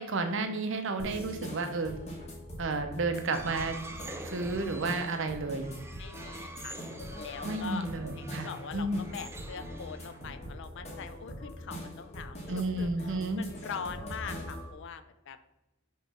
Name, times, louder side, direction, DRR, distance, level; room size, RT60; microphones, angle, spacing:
voice 1, 0.0-2.0 2.6-3.8 4.3-5.7 7.4-9.0 12.5-13.4, right 3 dB, 65° right, 7 dB, 0.7 m, -32 dB
sound 1, 1.0-14.7, equal, 30° left, 1.4 m, -43 dB
sound 2, 3.1-10.4, right 2 dB, 10° right, 0.4 m, -47 dB
voice 2, 6.0-6.8 7.2-7.9 8.1-15.4, left 6 dB, 60° left, 11 dB, 0.5 m, -43 dB
5.6 x 3.1 x 5.6 m, 0.99 s
head